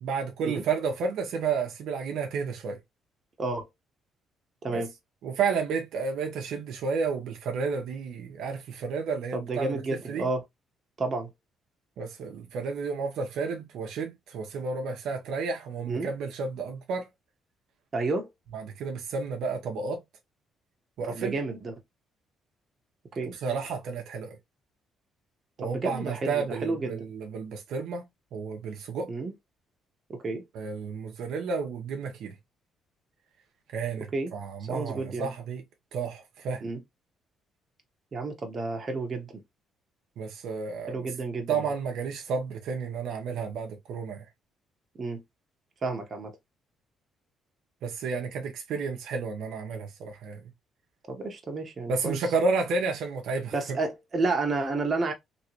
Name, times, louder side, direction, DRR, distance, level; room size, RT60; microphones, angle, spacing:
voice 1, 0.0-2.8 4.7-4.8 5.2-9.8 10.1-10.3 12.0-17.1 18.5-20.0 21.0-21.4 23.4-24.4 25.6-29.1 30.5-32.3 33.7-35.6 35.9-36.6 40.2-41.1 41.5-44.2 47.8-50.4 51.9-53.8, right 5 dB, 80° right, 0.9 m, -31 dB
voice 2, 9.3-10.4 11.0-11.3 15.9-16.1 17.9-18.3 21.1-21.7 23.2-23.3 25.6-27.1 29.1-29.3 30.1-30.4 34.1-34.3 34.7-35.3 36.6-36.8 38.1-39.3 40.9-41.7 45.0-45.2 45.8-46.3 51.1-52.2 53.5-55.1, right 3 dB, 35° right, 1.2 m, -31 dB
3.2 x 3.1 x 2.9 m
cardioid pair, 110°, 0 cm